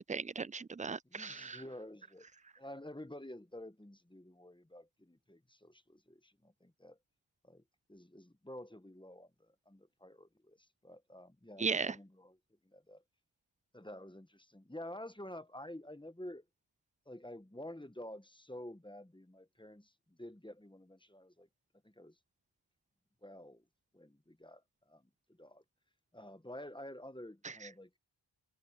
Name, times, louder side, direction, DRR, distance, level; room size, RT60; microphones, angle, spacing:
voice 1, 0.0-1.6 11.6-12.0 27.4-27.7, right 5 dB, 20° right, 0.3 m, -37 dB
voice 2, 1.0-2.3 2.6-7.0 7.4-7.6 7.9-12.4 12.6-13.0 13.7-16.4 17.1-21.5 21.8-22.1 23.2-23.6 23.9-24.6 24.9-25.6 26.1-27.9, left 1 dB, 10° left, 1.1 m, -50 dB
wide cardioid pair, 45°, 47 cm